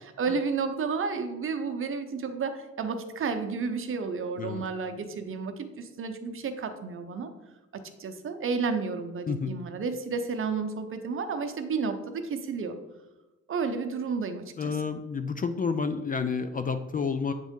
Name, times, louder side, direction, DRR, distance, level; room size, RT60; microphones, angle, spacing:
voice 1, 0.0-7.3 7.7-12.8 13.5-14.8, right 5 dB, 45° right, 7 dB, 0.7 m, -31 dB
voice 2, 14.6-17.3, left 5 dB, 30° left, 9 dB, 0.3 m, -30 dB
8.1 x 3.6 x 3.6 m, 1.1 s
cardioid pair, 90°, 30 cm